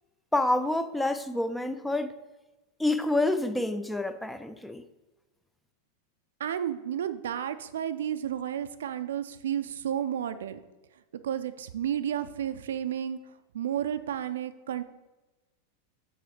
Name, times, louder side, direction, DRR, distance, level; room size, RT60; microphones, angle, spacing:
voice 1, 0.3-2.1 2.8-4.8, left 2 dB, 5° left, 0.4 m, -28 dB
voice 2, 6.4-10.6 11.2-14.8, right 9 dB, 60° right, 0.4 m, -32 dB
5.5 x 5.5 x 4.9 m
figure-of-eight pair, 90°, 0 cm